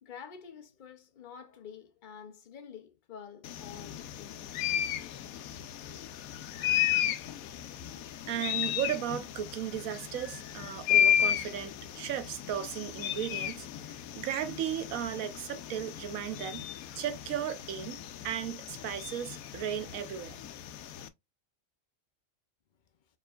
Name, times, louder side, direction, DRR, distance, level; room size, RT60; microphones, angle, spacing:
voice 1, 0.0-4.4 7.9-8.3 8.6-8.7, left 7 dB, 45° left, 0.7 m, -48 dB
sound 1, 3.4-21.1, left 10 dB, 90° left, 1.0 m, -34 dB
voice 2, 8.3-16.7 17.0-18.0 18.2-20.4, right 10 dB, 80° right, 1.2 m, -35 dB
4.4 x 3.7 x 2.3 m
omnidirectional pair, 1.4 m